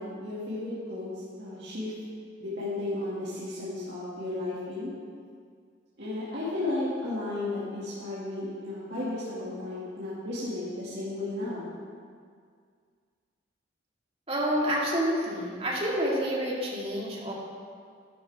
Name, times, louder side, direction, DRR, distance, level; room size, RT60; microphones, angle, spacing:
voice 1, 0.0-1.9 2.4-4.9 6.0-11.7, left 2 dB, 60° right, -11 dB, 2.5 m, -34 dB
voice 2, 14.3-17.3, equal, 30° right, -4 dB, 2.3 m, -28 dB
12.0 x 11.5 x 3.7 m, 2.1 s
head